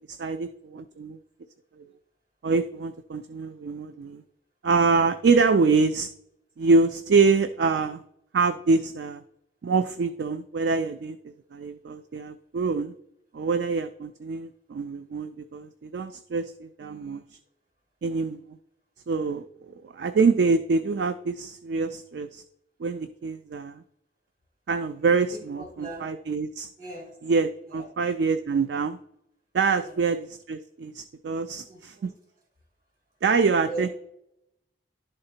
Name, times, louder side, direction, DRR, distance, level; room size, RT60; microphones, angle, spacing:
voice 1, 0.1-1.2 2.4-4.2 4.6-6.1 6.6-8.0 8.3-9.2 9.6-11.2 11.5-12.9 13.3-17.2 18.0-18.6 19.1-19.4 19.8-22.4 22.8-23.8 24.7-26.7 27.2-29.0 29.5-32.1 33.2-33.9, right 4 dB, 65° right, 10 dB, 0.3 m, -25 dB
voice 2, 25.3-26.1 26.8-27.2 27.7-27.9 29.8-30.0 31.6-32.1 33.6-33.9, right 2 dB, 50° right, 1 dB, 2.6 m, -39 dB
11.0 x 3.8 x 4.3 m, 0.79 s
head